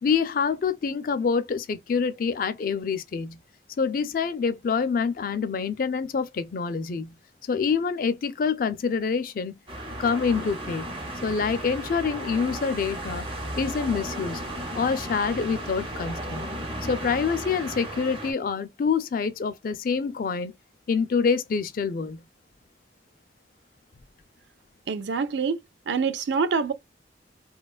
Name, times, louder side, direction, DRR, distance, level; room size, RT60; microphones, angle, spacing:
voice 1, 0.0-3.4 3.8-7.2 7.5-9.5 9.9-10.9 11.2-13.3 13.6-14.5 14.7-16.5 16.8-20.5 20.9-22.2, left 5 dB, 50° left, 0.4 m, -26 dB
sound 1, 9.7-18.3, right 1 dB, 30° right, 0.6 m, -35 dB
voice 2, 24.9-25.6 25.9-26.7, right 5 dB, 85° right, 0.4 m, -25 dB
2.7 x 2.2 x 2.3 m
head